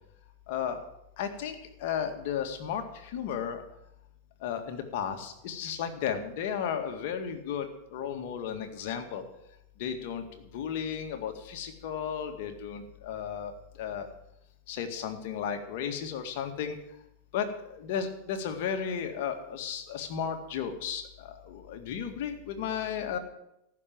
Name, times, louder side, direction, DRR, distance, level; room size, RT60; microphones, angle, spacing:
voice 1, 0.5-0.8 1.2-1.6 1.8-3.6 4.4-9.2 9.8-13.5 13.8-14.1 14.7-16.8 17.3-23.2, left 8 dB, 60° left, 6 dB, 1.9 m, -34 dB
14.5 x 6.4 x 8.9 m, 0.85 s
hypercardioid pair, 100°, 0 cm